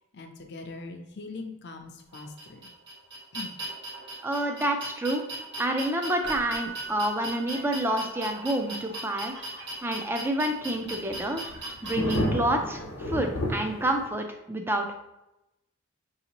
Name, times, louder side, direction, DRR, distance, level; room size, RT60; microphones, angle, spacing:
voice 1, 0.1-2.7 3.3-3.5, left 3 dB, 50° left, 4 dB, 0.6 m, -41 dB
sound 1, 2.1-12.2, right 1 dB, 55° right, 1.3 m, -38 dB
voice 2, 4.2-5.2 5.6-9.3 9.8-11.4 11.8-14.9, right 1 dB, 10° right, 4 dB, 0.4 m, -28 dB
Keyboard (musical), 6.2-8.2 11.4-11.6, right 6 dB, 90° right, 0.8 m, -40 dB
sound 2, 10.8-14.1, left 1 dB, 90° left, 0.9 m, -31 dB
5.8 x 2.7 x 2.9 m, 0.90 s
head